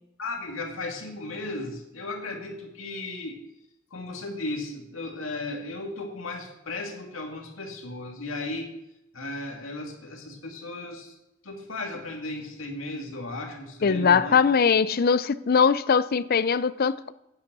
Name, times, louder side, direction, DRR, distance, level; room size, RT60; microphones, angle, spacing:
voice 1, 0.2-3.4 3.9-8.7 9.1-11.1 11.4-14.4, left 2 dB, 85° left, 2.4 m, -35 dB
voice 2, 13.8-17.1, left 6 dB, 50° left, 0.5 m, -21 dB
9.4 x 9.3 x 6.1 m
head